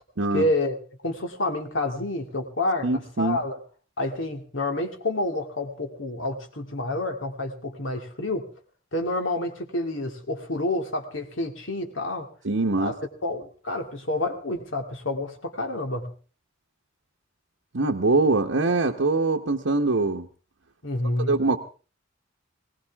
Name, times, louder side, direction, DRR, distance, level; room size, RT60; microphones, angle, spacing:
voice 1, 0.3-0.8 1.0-3.6 4.0-8.5 8.9-12.2 12.8-13.0 13.2-16.1 20.8-21.3, left 2 dB, 70° left, 4 dB, 2.4 m, -28 dB
voice 2, 2.8-3.4 12.4-12.9 17.7-20.3 21.3-21.6, right 3 dB, 75° right, 1 dB, 1.1 m, -23 dB
20.0 x 18.5 x 3.5 m, 0.37 s
head